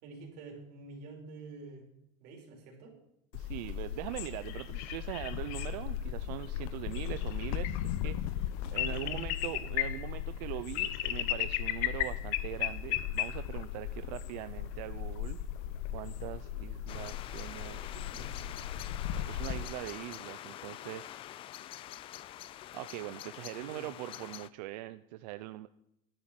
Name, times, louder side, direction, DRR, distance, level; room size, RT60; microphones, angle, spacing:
voice 1, 0.0-1.9 2.2-2.9 8.7-9.2 9.5-9.7 23.6-23.9, right 3 dB, 50° right, -1 dB, 4.2 m, -48 dB
sound 1, 3.3-19.7, left 12 dB, 60° left, 0.8 m, -36 dB
voice 2, 3.3-15.4 15.9-18.6 19.2-21.2 22.7-25.7, right 16 dB, 85° right, 12 dB, 0.6 m, -42 dB
sound 2, 16.9-24.5, left 12 dB, 25° left, 0.3 m, -45 dB
12.0 x 10.5 x 5.9 m, 0.80 s
cardioid pair, 175°, 21 cm